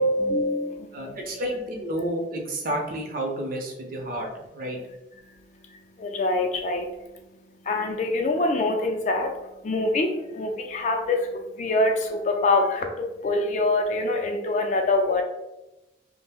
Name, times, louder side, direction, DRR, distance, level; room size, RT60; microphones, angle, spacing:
voice 1, 0.0-1.2 4.0-4.3 4.8-15.2, left 2 dB, 40° left, 4 dB, 0.3 m, -26 dB
voice 2, 0.9-4.8, right 1 dB, 50° right, 0 dB, 0.6 m, -30 dB
2.5 x 2.0 x 3.4 m, 0.97 s
head